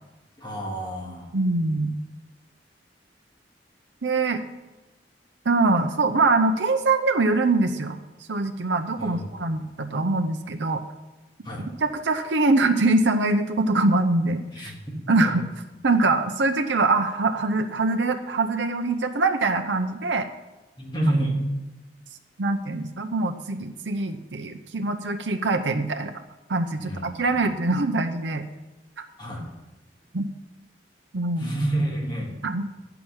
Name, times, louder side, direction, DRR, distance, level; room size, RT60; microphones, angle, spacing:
voice 1, 0.4-1.3 9.0-9.2 11.4-11.6 14.5-14.8 15.2-15.3 20.8-21.4 26.8-27.0 27.4-27.5 29.2-29.4 31.4-32.3, right 1 dB, 25° left, -3 dB, 3.0 m, -28 dB
voice 2, 1.3-1.9 4.0-4.4 5.4-8.0 8.3-10.8 11.8-14.7 15.1-15.4 15.8-20.3 22.4-26.1 26.5-28.4 29.0-29.1 30.1-30.3 31.1-31.5 32.4-32.7, right 3 dB, 80° right, 5 dB, 0.7 m, -23 dB
11.5 x 5.9 x 8.9 m, 1.1 s
head